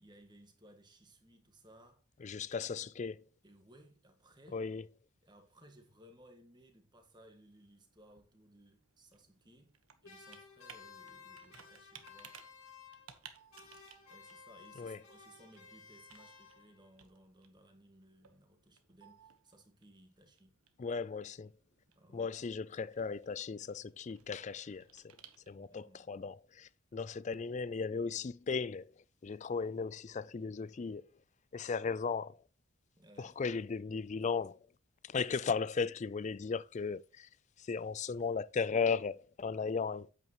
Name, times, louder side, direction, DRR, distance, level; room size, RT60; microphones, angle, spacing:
voice 1, 0.0-2.0 2.8-2.9 3.4-4.7 5.2-9.8 10.0-12.8 14.1-20.6 21.9-22.4 25.7-26.1 33.0-33.4, right 1 dB, 20° right, 1.7 m, -61 dB
voice 2, 2.2-3.2 4.5-4.8 14.8-15.0 20.8-21.5 22.1-25.0 25.5-28.9 29.2-31.0 31.5-32.4 33.2-34.6 35.0-37.3 37.6-40.1, left 5 dB, 35° left, 0.3 m, -36 dB
Computer keyboard, 7.6-25.8, right 8 dB, 90° right, 1.3 m, -61 dB
sound 1, 10.0-13.3 13.5-16.9, left 5 dB, 80° left, 2.2 m, -56 dB
9.0 x 8.2 x 3.0 m
head